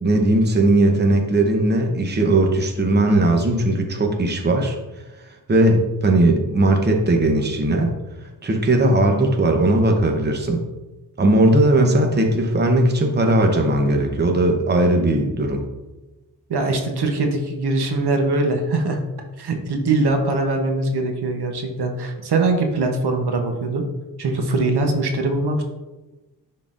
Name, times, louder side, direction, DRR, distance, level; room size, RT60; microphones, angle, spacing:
voice 1, 0.0-4.8 5.5-7.9 8.4-10.6 11.2-15.6, right 1 dB, 25° right, 3 dB, 0.8 m, -18 dB
voice 2, 16.5-19.0 19.4-23.8 24.2-25.6, right 2 dB, 70° right, 4 dB, 0.9 m, -22 dB
10.5 x 3.8 x 2.5 m, 1.1 s
wide cardioid pair, 120°, 40 cm